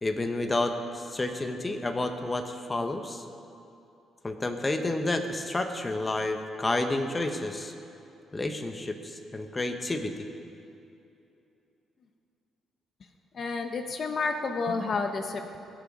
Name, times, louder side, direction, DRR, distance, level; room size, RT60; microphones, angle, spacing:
voice 1, 0.0-3.3 4.2-7.7 8.3-10.3, left 2 dB, 20° left, 6 dB, 1.0 m, -30 dB
voice 2, 13.3-15.6, left 4 dB, 50° left, 6 dB, 0.9 m, -30 dB
21.0 x 7.0 x 5.4 m, 2.8 s
cardioid pair, 90°, 0 cm